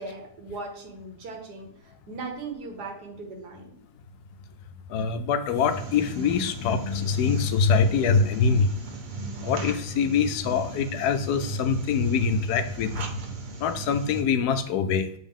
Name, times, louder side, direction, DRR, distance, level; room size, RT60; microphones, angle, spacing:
voice 1, 0.0-3.8, right 3 dB, 85° right, 2 dB, 1.8 m, -38 dB
voice 2, 4.9-8.7 9.4-13.1 13.6-15.1, left 5 dB, 80° left, 9 dB, 1.2 m, -24 dB
sound 1, 5.7-14.2, right 3 dB, 50° right, 0.5 m, -38 dB
7.1 x 3.8 x 3.6 m, 0.73 s
omnidirectional pair, 1.7 m